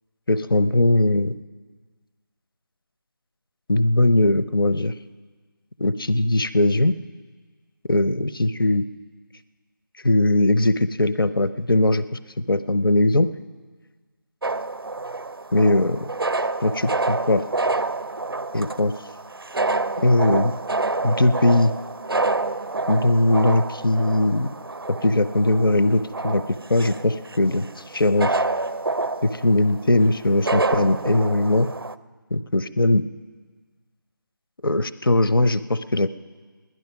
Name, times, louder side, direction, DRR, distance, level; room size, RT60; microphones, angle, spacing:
voice 1, 0.3-1.3 3.7-4.9 5.8-6.9 7.9-8.8 10.0-12.0 12.5-13.3 15.5-16.1 16.6-17.4 18.5-18.9 20.0-20.5 21.0-21.7 22.9-24.5 25.0-27.7 27.9-28.4 29.2-31.7 32.3-33.0 34.6-36.1, left 2 dB, 70° left, 13 dB, 0.7 m, -20 dB
sound 1, 14.4-31.9, right 3 dB, 80° right, 0.5 m, -28 dB
16.5 x 11.0 x 5.9 m, 1.4 s
figure-of-eight pair, 160°, 12 cm